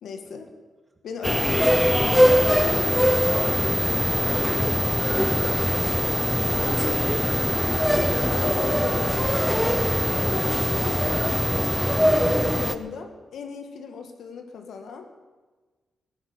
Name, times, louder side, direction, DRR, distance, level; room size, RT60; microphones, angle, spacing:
voice 1, 0.0-0.5 1.0-3.3 4.5-4.9 5.3-5.6 6.5-7.1 7.7-9.3 10.1-15.1, left 5 dB, 90° left, 5 dB, 1.6 m, -36 dB
sound 1, 1.2-12.8, equal, ahead, 0.6 m, -22 dB
voice 2, 4.2-5.7 6.6-8.2, right 1 dB, 20° right, 2 dB, 2.2 m, -37 dB
17.5 x 11.5 x 5.6 m, 1.3 s
wide cardioid pair, 135°, 0 cm